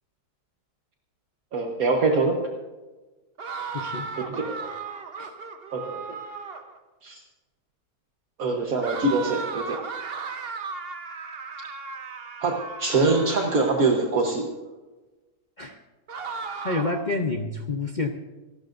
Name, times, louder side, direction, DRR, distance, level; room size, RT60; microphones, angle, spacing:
voice 1, 1.5-2.4 4.3-4.6 5.7-6.0 7.0-7.2 8.4-9.8 12.4-14.5, right 3 dB, 65° right, 1 dB, 1.7 m, -24 dB
sound 1, 3.4-6.8 8.8-14.1 16.1-17.1, right 5 dB, 45° right, 1.1 m, -36 dB
voice 2, 3.7-4.1 5.2-5.3 15.6-15.8 16.6-18.1, left 3 dB, 40° left, 4 dB, 0.8 m, -28 dB
27.5 x 12.5 x 2.6 m, 1.2 s
omnidirectional pair, 1.6 m